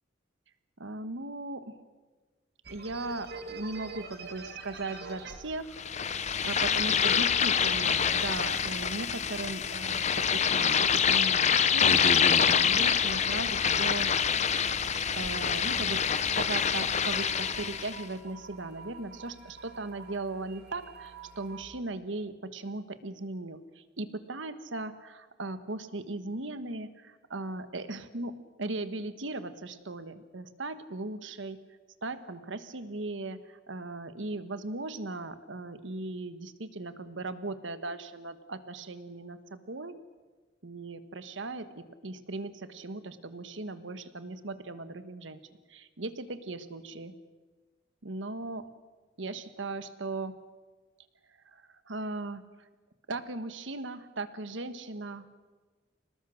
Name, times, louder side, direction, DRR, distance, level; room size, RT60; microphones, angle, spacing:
voice 1, 0.8-1.8 2.7-5.8 6.4-12.0 12.4-14.1 15.0-16.0 16.3-31.6 32.0-39.9 40.6-45.4 45.7-47.1 48.0-48.7 49.2-50.4 51.4-52.7 53.1-55.4, right 2 dB, 85° right, 11 dB, 1.4 m, -38 dB
sound 1, 2.6-21.6, right 4 dB, 60° right, 2.5 m, -49 dB
sound 2, 5.8-18.0, left 7 dB, 35° left, 0.8 m, -26 dB
28.5 x 19.0 x 6.4 m, 1.3 s
head